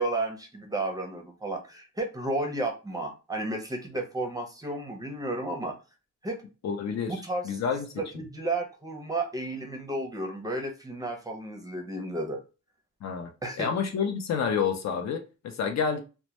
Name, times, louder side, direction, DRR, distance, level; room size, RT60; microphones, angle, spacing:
voice 1, 0.0-5.7 6.2-6.4 7.1-7.6 8.0-12.4 13.4-13.7, right 2 dB, 15° right, 0.5 m, -32 dB
voice 2, 6.6-7.2 7.4-7.9 13.0-13.3 13.6-16.0, left 6 dB, 65° left, 0.5 m, -28 dB
2.1 x 2.1 x 2.8 m
wide cardioid pair, 130°, 29 cm